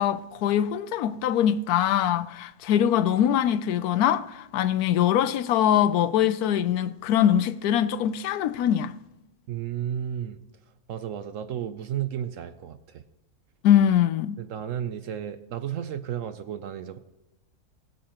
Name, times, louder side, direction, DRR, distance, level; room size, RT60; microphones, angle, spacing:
voice 1, 0.0-9.0 13.6-14.4, left 10 dB, 80° left, 1.1 m, -23 dB
voice 2, 9.5-10.4 10.9-13.0 14.4-17.0, right 10 dB, 65° right, 0.9 m, -33 dB
21.0 x 7.5 x 2.9 m
omnidirectional pair, 1.6 m